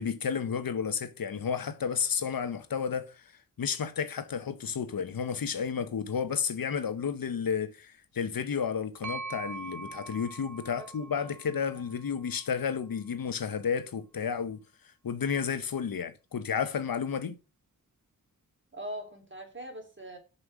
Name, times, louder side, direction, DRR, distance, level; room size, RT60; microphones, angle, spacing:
voice 1, 0.0-3.2 3.6-14.6 15.0-17.4, left 7 dB, 80° left, 1.0 m, -32 dB
sound 1, 9.0-12.8, right 3 dB, 55° right, 1.1 m, -43 dB
voice 2, 10.8-11.3 18.7-20.2, right 1 dB, 35° right, 3.2 m, -42 dB
6.4 x 5.6 x 6.2 m
cardioid pair, 50°, 35 cm